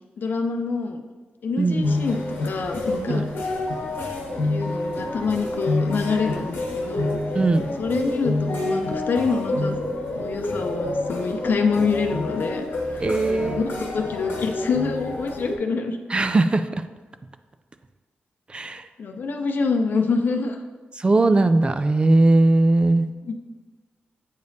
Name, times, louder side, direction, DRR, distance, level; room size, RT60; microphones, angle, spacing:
voice 1, 0.2-1.0 1.4-3.2 4.4-7.2 7.8-9.8 10.1-12.7 13.3-16.0 19.0-20.6 23.2-23.3, left 4 dB, 60° left, 5 dB, 0.6 m, -26 dB
sound 1, 1.8-15.6, left 2 dB, 90° left, 1.1 m, -28 dB
voice 2, 13.0-13.8 16.1-16.7 18.5-18.8 21.0-23.1, right 2 dB, 30° right, 10 dB, 0.3 m, -19 dB
8.0 x 5.0 x 2.7 m, 1.3 s
cardioid pair, 95°, 4 cm